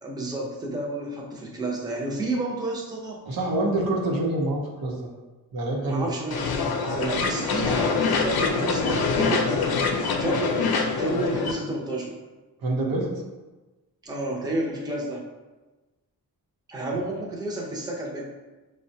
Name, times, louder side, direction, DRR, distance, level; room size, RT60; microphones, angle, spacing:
voice 1, 0.0-3.2 5.9-9.7 10.0-12.2 14.0-15.2 16.7-18.3, right 2 dB, 10° right, -2 dB, 0.6 m, -30 dB
voice 2, 3.2-5.1 5.5-6.1 12.6-13.1, right 2 dB, 85° right, -1 dB, 0.8 m, -26 dB
sound 1, 6.3-11.5, left 4 dB, 90° left, 0.5 m, -25 dB
5.2 x 2.2 x 2.7 m, 1.2 s
wide cardioid pair, 125°, 36 cm